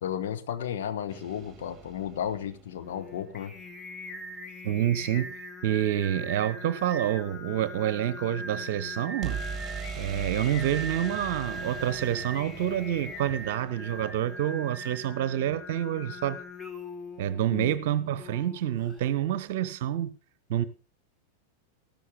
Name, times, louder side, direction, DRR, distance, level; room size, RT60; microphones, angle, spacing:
voice 1, 0.0-3.5 17.5-17.7, left 9 dB, 55° left, 1.2 m, -33 dB
sound 1, 1.1-3.1 9.2-15.0, right 7 dB, 20° right, 2.2 m, -41 dB
Singing, 2.8-19.1, left 1 dB, 10° left, 1.6 m, -41 dB
voice 2, 4.6-9.4 10.0-16.4 17.2-20.1 20.5-20.6, right 11 dB, 50° right, 0.9 m, -28 dB
14.5 x 12.5 x 3.7 m
figure-of-eight pair, 90°, 0 cm